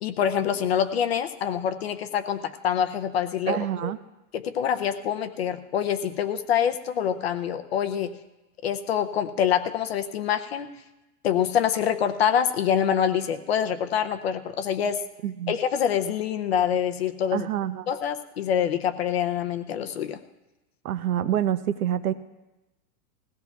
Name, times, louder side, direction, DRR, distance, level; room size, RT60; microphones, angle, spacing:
voice 1, 0.0-3.9 4.3-8.1 8.6-10.7 11.2-15.0 15.5-17.5 17.9-20.2, left 8 dB, 40° left, 9 dB, 0.6 m, -25 dB
voice 2, 3.5-4.0 15.2-15.5 17.3-17.9 20.8-22.1, right 11 dB, 65° right, 12 dB, 0.7 m, -27 dB
21.5 x 16.5 x 2.3 m, 1.0 s
supercardioid pair, 175°, 48 cm